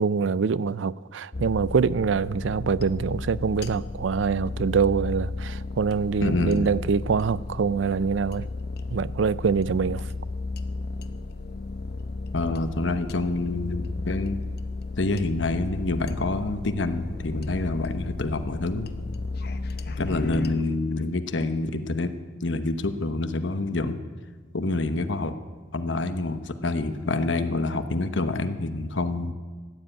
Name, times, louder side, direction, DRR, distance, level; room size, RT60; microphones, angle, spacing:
voice 1, 0.0-8.5 8.9-10.0, right 5 dB, 85° right, 0.4 m, -24 dB
sound 1, 1.3-20.5, left 3 dB, 55° left, 0.8 m, -34 dB
voice 2, 6.2-6.7 12.3-14.4 15.0-18.9 19.9-22.1 22.4-24.0 24.5-25.4 25.7-29.3, left 2 dB, 75° left, 1.1 m, -27 dB
14.5 x 10.0 x 9.0 m
head